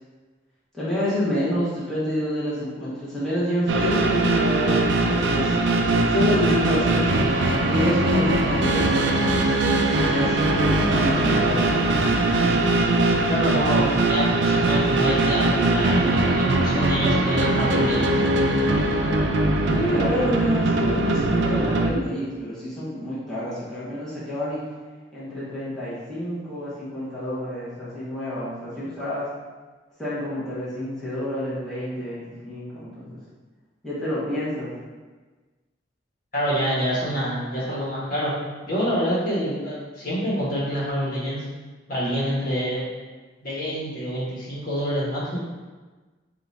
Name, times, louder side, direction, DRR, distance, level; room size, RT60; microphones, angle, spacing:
voice 1, 0.7-9.3 10.0-11.6 19.7-24.6 25.1-29.3 30.0-33.2 33.8-34.7, left 1 dB, 5° left, -11 dB, 1.1 m, -28 dB
sound 1, 3.7-21.9, right 2 dB, 75° right, 0.5 m, -21 dB
voice 2, 13.3-18.5 36.3-38.3 38.6-41.4 41.9-42.9 43.4-45.4, equal, 50° left, -8 dB, 1.2 m, -26 dB
3.9 x 2.5 x 4.1 m, 1.3 s
head